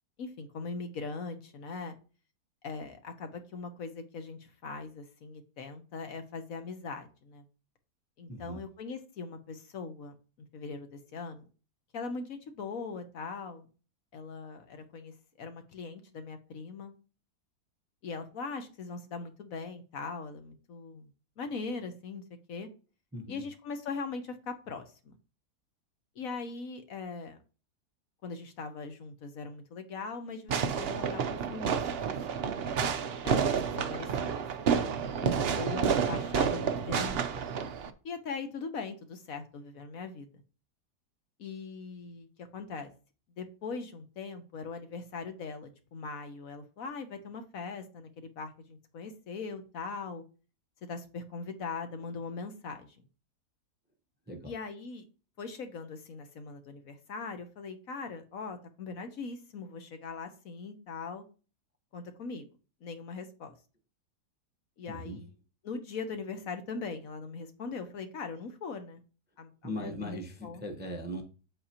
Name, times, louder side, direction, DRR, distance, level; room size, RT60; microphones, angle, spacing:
voice 1, 0.2-1.9 2.6-7.4 8.2-10.2 10.5-11.5 11.9-13.7 14.1-16.9 18.0-21.1 21.4-22.2 22.5-22.7 23.3-25.2 26.2-27.4 28.2-32.4 33.2-34.3 35.6-37.4 38.0-40.3 41.4-42.3 42.5-42.9 43.4-50.2 50.9-52.9 54.5-55.1 55.4-61.2 61.9-62.5 62.8-63.5 64.8-65.2 65.6-69.0 69.4-70.6, left 4 dB, 60° left, 7 dB, 1.2 m, -40 dB
voice 2, 8.3-8.6 23.1-23.4 35.2-35.6 54.3-54.5 64.9-65.2 69.6-71.2, equal, 10° right, 3 dB, 0.6 m, -39 dB
Fireworks, 30.5-37.9, right 7 dB, 65° right, 0.6 m, -30 dB
8.3 x 7.7 x 2.8 m, 0.36 s
omnidirectional pair, 1.7 m